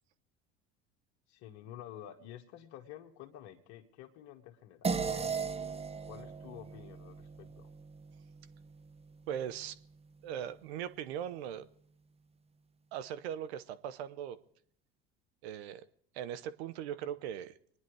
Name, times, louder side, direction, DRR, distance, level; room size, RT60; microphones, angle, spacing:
voice 1, 1.3-5.4 6.0-7.7, left 11 dB, 60° left, 2 dB, 1.3 m, -50 dB
sound 1, 4.8-9.6, right 5 dB, 20° right, 0.8 m, -38 dB
voice 2, 9.3-9.7 10.2-11.7 12.9-14.4 15.4-15.9 16.1-17.5, right 10 dB, 75° right, 14 dB, 0.8 m, -39 dB
23.5 x 10.5 x 4.7 m, 0.64 s
hypercardioid pair, 80°, 32 cm